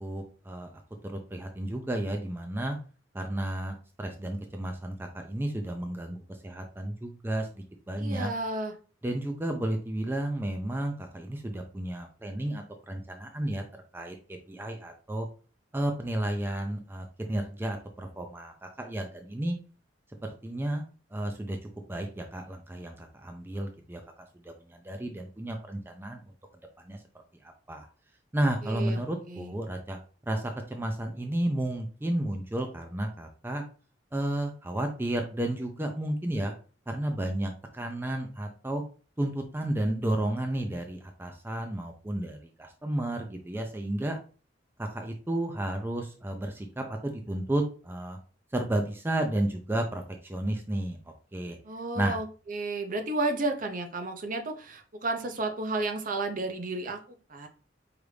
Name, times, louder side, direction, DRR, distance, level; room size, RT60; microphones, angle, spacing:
voice 1, 0.0-0.7 1.0-2.8 3.1-8.3 9.0-13.6 13.9-14.2 14.5-15.3 15.7-19.6 20.4-20.8 21.1-21.6 21.9-24.5 24.8-26.2 26.8-27.0 27.4-27.9 28.3-30.0 30.3-33.6 34.1-36.5 36.9-38.8 39.2-44.2 44.8-48.2 48.5-51.0 51.3-51.6 52.0-52.2, right 1 dB, 10° right, 4 dB, 0.4 m, -32 dB
voice 2, 8.0-8.7 28.6-29.0 29.3-29.5 51.6-57.0 57.3-57.5, right 2 dB, 50° right, 6 dB, 0.6 m, -32 dB
4.8 x 2.6 x 3.2 m, 0.37 s
head